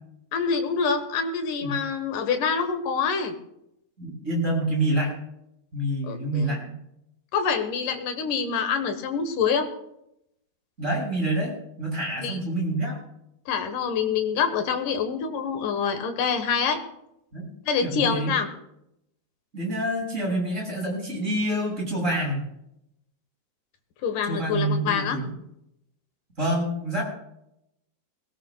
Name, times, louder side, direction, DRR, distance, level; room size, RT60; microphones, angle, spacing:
voice 1, 0.3-3.3 6.0-6.6 7.3-9.7 12.2-12.4 13.5-16.8 17.7-18.5 24.0-25.2, left 6 dB, 70° left, 7 dB, 2.7 m, -26 dB
voice 2, 4.0-5.2 5.7-6.8 10.8-13.0 17.3-17.5 17.8-18.3 19.5-22.4 24.3-25.3 26.4-27.0, right 1 dB, 20° right, -2 dB, 6.3 m, -27 dB
21.5 x 17.0 x 2.3 m, 0.82 s
omnidirectional pair, 4.0 m